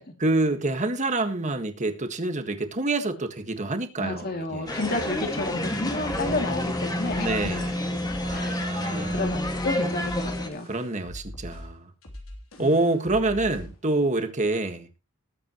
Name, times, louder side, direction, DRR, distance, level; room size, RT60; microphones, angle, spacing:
voice 1, 0.2-4.8 7.2-7.8 8.2-9.4 10.6-11.9 12.6-14.9, right 2 dB, 35° right, 1.6 m, -27 dB
voice 2, 4.0-7.3 8.3-8.6 8.9-10.7 12.6-12.7, left 2 dB, 45° left, 2.7 m, -31 dB
sound 1, 4.7-10.5, left 1 dB, 20° left, 2.0 m, -29 dB
sound 2, 6.0-13.8, left 1 dB, 70° left, 3.3 m, -42 dB
19.5 x 8.6 x 3.1 m
head